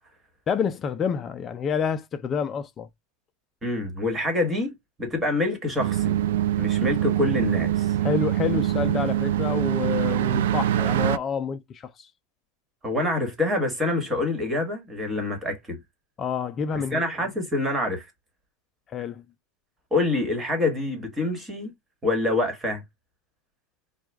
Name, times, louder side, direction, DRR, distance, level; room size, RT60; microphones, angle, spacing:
voice 1, 0.5-2.9 8.0-12.1 16.2-17.0 18.9-19.2, left 7 dB, 25° left, 0.4 m, -28 dB
voice 2, 3.6-6.2 6.6-8.0 12.8-15.8 16.7-18.1 19.9-21.7 22.0-22.8, left 2 dB, 10° right, 1.5 m, -26 dB
sound 1, 5.8-11.2, right 12 dB, 85° right, 0.3 m, -24 dB
4.8 x 2.3 x 3.4 m
supercardioid pair, 150°, 0 cm